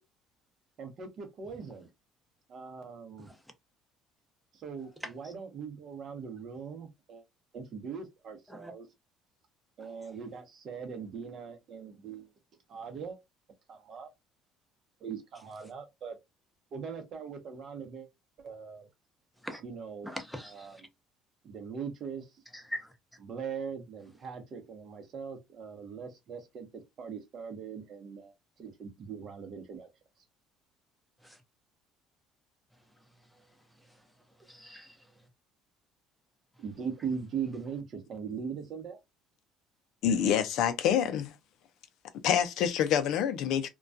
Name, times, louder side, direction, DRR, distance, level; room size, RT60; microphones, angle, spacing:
voice 1, 0.8-1.9 2.5-3.3 4.6-7.2 7.5-8.9 9.8-12.3 12.7-13.2 13.7-14.1 15.0-16.1 16.7-18.1 18.4-18.9 19.6-20.1 20.4-20.8 21.4-22.2 23.2-26.7 27.0-28.3 28.6-29.9 36.6-39.0, right 6 dB, 55° right, 0.7 m, -40 dB
voice 2, 5.0-5.3 8.5-8.7 19.4-19.6 20.0-20.7 22.5-22.9 31.2-31.4 34.5-35.0, equal, ahead, 0.6 m, -41 dB
voice 3, 40.0-41.3 42.2-43.7, left 9 dB, 70° left, 0.4 m, -26 dB
2.2 x 2.2 x 2.5 m
supercardioid pair, 100°, 0 cm